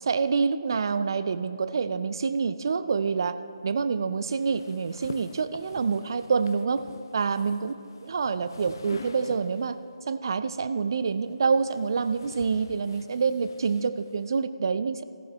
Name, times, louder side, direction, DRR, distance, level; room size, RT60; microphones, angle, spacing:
voice 1, 0.0-3.4 3.6-6.9 7.1-7.7 8.0-9.8 10.1-15.0, right 5 dB, 45° right, 13 dB, 0.5 m, -27 dB
sound 1, 4.2-9.8 10.9-14.4, left 5 dB, 45° left, 0.6 m, -47 dB
14.5 x 13.5 x 3.1 m, 2.5 s
figure-of-eight pair, 145°, 3 cm